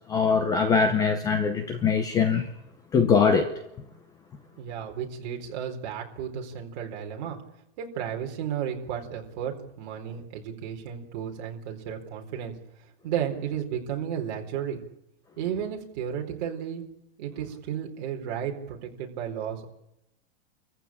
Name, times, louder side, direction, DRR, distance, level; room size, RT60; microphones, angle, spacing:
voice 1, 0.1-2.5 2.9-3.5, left 5 dB, 10° left, 0.8 m, -22 dB
voice 2, 4.6-7.4 7.8-12.5 13.0-14.8 15.4-16.8 17.2-19.7, right 9 dB, 40° right, 4.3 m, -33 dB
27.0 x 15.0 x 8.8 m
supercardioid pair, 170°, 33 cm